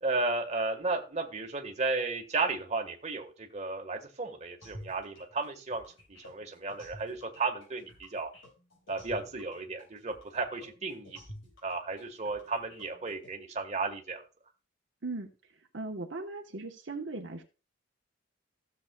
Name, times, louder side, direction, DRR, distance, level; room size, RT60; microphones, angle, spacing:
voice 1, 0.0-5.8 6.1-8.3 8.9-11.2 11.6-14.2, right 3 dB, 35° right, 2 dB, 1.4 m, -34 dB
sound 1, 4.6-13.3, equal, 85° left, 4.8 m, -50 dB
voice 2, 15.7-17.4, right 3 dB, 65° right, 2 dB, 1.1 m, -38 dB
15.5 x 7.2 x 2.3 m, 0.33 s
head